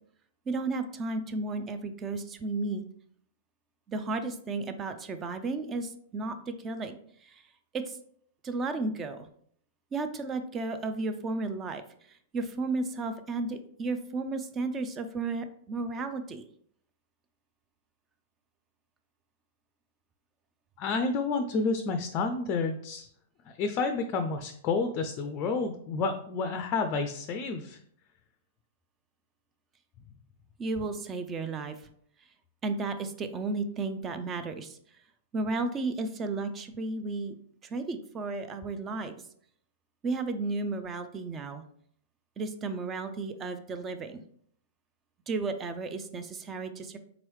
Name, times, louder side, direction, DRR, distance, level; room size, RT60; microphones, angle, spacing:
voice 1, 0.5-2.8 3.9-7.0 7.2-7.4 7.7-8.0 8.4-9.3 9.9-11.8 12.3-16.4 30.6-31.8 32.6-34.8 35.3-37.4 37.6-39.1 40.0-41.6 42.4-44.2 45.3-47.0, right 3 dB, 25° right, 9 dB, 0.4 m, -33 dB
voice 2, 20.8-23.1 23.5-27.8, left 4 dB, 40° left, 7 dB, 0.4 m, -30 dB
3.8 x 3.0 x 3.1 m, 0.64 s
hypercardioid pair, 110°, 0 cm